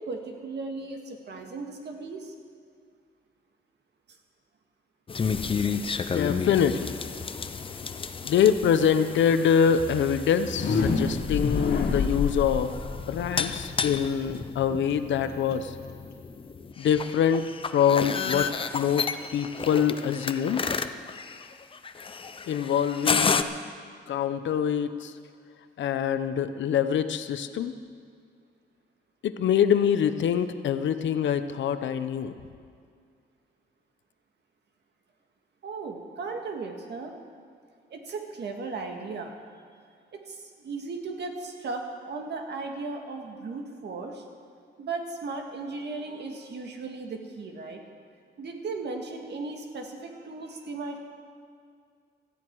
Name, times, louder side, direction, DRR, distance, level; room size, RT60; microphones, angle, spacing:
voice 1, 0.0-2.3 35.6-37.2 37.9-39.3 40.1-44.2 44.8-47.8 48.4-51.0, right 3 dB, 65° right, 3 dB, 1.8 m, -36 dB
sound 1, 5.1-23.4, left 5 dB, 30° left, 0.6 m, -32 dB
voice 2, 6.1-7.0 8.2-15.7 16.8-17.4 17.7-18.5 18.7-19.1 19.3-20.6 22.5-23.5 24.1-25.1 25.8-27.7 29.2-32.3, left 8 dB, 85° left, 10 dB, 0.8 m, -25 dB
sound 2, 10.4-16.2, left 4 dB, 55° left, 1.5 m, -29 dB
17.5 x 14.0 x 4.7 m, 2.2 s
wide cardioid pair, 130°, 19 cm